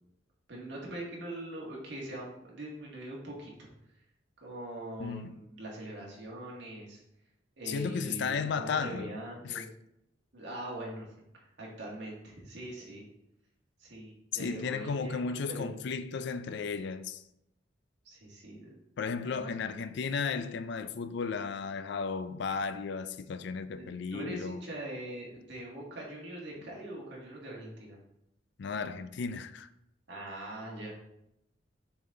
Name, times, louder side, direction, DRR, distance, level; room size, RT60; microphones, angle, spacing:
voice 1, 0.5-3.7 4.4-7.0 7.6-9.7 10.3-11.1 11.3-13.1 13.8-15.9 18.0-18.8 19.2-19.9 23.8-28.0 30.1-30.9, right 1 dB, 65° right, 2.0 m, -42 dB
voice 2, 5.0-5.4 7.7-9.1 9.4-9.6 14.3-17.2 19.0-24.6 28.6-29.7, left 5 dB, 65° left, 0.4 m, -34 dB
6.9 x 4.0 x 3.8 m
head